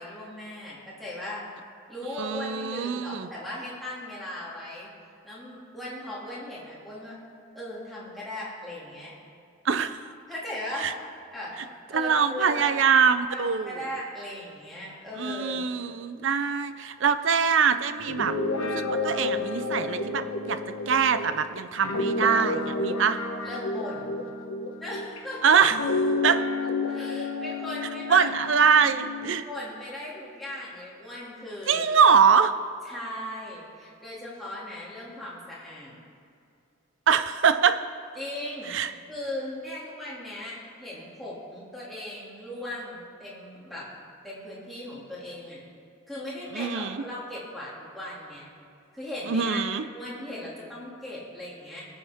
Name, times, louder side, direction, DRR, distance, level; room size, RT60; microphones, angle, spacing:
voice 1, 0.0-1.5 1.9-4.9 5.2-7.2 7.5-9.2 10.3-10.9 11.3-11.6 11.9-15.7 23.4-24.2 24.8-25.6 26.8-28.3 29.3-31.8 32.8-36.0 38.1-43.9 44.2-45.6 46.1-48.5 48.9-51.9, left 1 dB, ahead, -8 dB, 2.5 m, -38 dB
voice 2, 2.2-3.3 9.6-10.0 10.8-10.9 11.9-13.7 15.2-18.3 18.6-20.6 20.9-23.2 25.4-25.8 26.2-26.4 28.1-29.4 31.7-32.5 37.1-37.8 38.7-38.9 46.5-47.0 49.3-49.8, right 6 dB, 60° right, 11 dB, 0.5 m, -23 dB
Guitar, 18.0-25.2 25.6-29.4, left 2 dB, 75° left, 1.1 m, -30 dB
21.5 x 7.2 x 3.6 m, 2.5 s
head